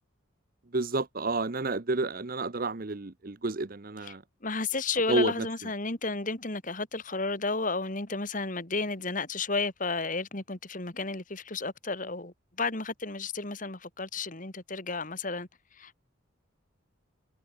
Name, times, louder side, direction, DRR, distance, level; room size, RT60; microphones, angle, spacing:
voice 1, 0.7-4.2 5.1-5.5, right 3 dB, 45° right, 0.9 m, -30 dB
voice 2, 4.4-15.5 15.8-16.0, left 3 dB, 40° left, 2.2 m, -32 dB
head